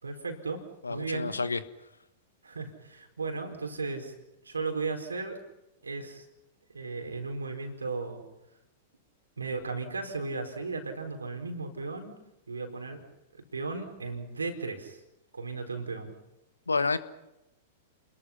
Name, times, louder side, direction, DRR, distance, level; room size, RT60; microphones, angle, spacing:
voice 1, 0.0-1.4 2.4-4.1 4.4-5.4 5.8-6.3 6.7-8.2 9.4-12.1 12.5-13.0 13.5-15.0 15.3-16.1, right 3 dB, 80° right, 4 dB, 4.4 m, -35 dB
voice 2, 0.8-1.6 16.7-17.0, left 4 dB, 80° left, 13 dB, 1.3 m, -28 dB
29.5 x 21.5 x 5.9 m, 0.89 s
figure-of-eight pair, 100°, 0 cm